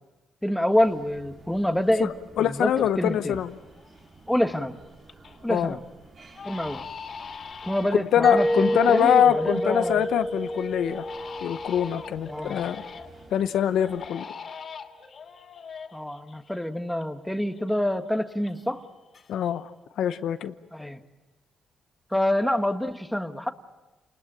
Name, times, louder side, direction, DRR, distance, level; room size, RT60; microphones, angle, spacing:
voice 1, 0.4-2.1 2.4-2.7 3.0-3.4 4.3-4.8 5.4-5.8 6.4-6.8 7.6-10.0 12.3-12.6 15.9-18.8 20.7-21.0 22.1-23.5, left 1 dB, 5° left, 7 dB, 1.6 m, -26 dB
sound 1, 0.7-14.1, right 3 dB, 45° right, 3.1 m, -52 dB
voice 2, 2.4-3.5 5.5-5.8 7.9-11.1 11.4-12.8 13.3-14.3 19.3-19.7 20.0-20.5, left 10 dB, 75° left, 11 dB, 0.9 m, -24 dB
Crying sobbing, 3.2-3.3 3.7-4.2 4.6-5.4 5.7-5.9 6.3-13.3 13.7-17.1 17.3-18.9 19.1-19.7, left 6 dB, 50° left, 2.8 m, -42 dB
Mallet percussion, 8.2-12.8, equal, 10° right, 1.6 m, -28 dB
29.0 x 20.5 x 8.9 m, 1.2 s
cardioid pair, 90°, 0 cm